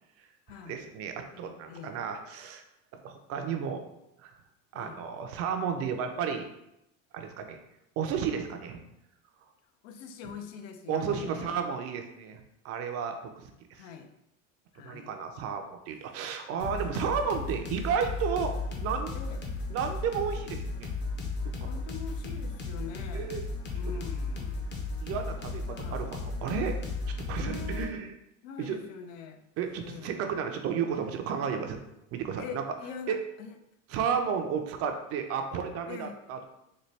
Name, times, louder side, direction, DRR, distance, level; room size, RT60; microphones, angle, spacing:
voice 1, 0.6-2.6 3.0-3.8 4.2-4.3 4.7-6.5 7.1-7.6 8.0-8.8 10.9-13.8 14.8-18.5 18.8-19.2 19.7-20.9 21.6-21.7 23.1-23.4 23.9-24.0 25.0-26.8 27.1-28.1 28.6-28.8 29.6-31.8 32.1-32.6 33.1-33.2 33.9-36.5, right 7 dB, 40° right, 5 dB, 0.4 m, -32 dB
voice 2, 1.3-2.0 4.7-5.0 9.8-11.7 13.8-14.1 14.7-15.2 18.4-18.5 19.1-19.4 21.6-23.4 23.7-24.8 25.7-26.1 27.3-28.0 28.4-29.4 29.8-30.2 32.4-33.5 35.9-36.2, left 6 dB, 85° left, 7 dB, 0.6 m, -43 dB
sound 1, 16.6-27.9, left 3 dB, 30° left, 0.6 m, -35 dB
4.1 x 2.2 x 3.2 m, 0.84 s
supercardioid pair, 130°, 37 cm